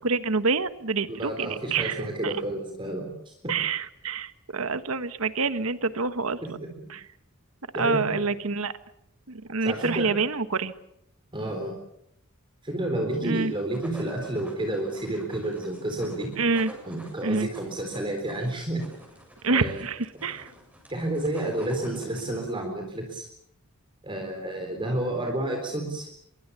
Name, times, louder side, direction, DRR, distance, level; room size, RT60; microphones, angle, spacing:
voice 1, 0.0-2.3 3.5-6.6 6.9-7.0 7.7-8.7 9.3-10.7 13.2-13.5 16.4-16.7 17.2-17.5 19.4-20.5, right 4 dB, 70° right, 12 dB, 1.3 m, -27 dB
voice 2, 1.1-3.6 6.4-6.9 7.7-8.0 9.6-10.1 11.3-11.7 12.6-16.3 16.9-18.8 19.5-19.8 20.9-23.3 24.0-26.1, right 1 dB, 20° right, 3 dB, 4.0 m, -30 dB
sound 1, 13.4-22.5, equal, 5° right, 7.5 m, -48 dB
25.0 x 22.5 x 7.0 m, 0.76 s
head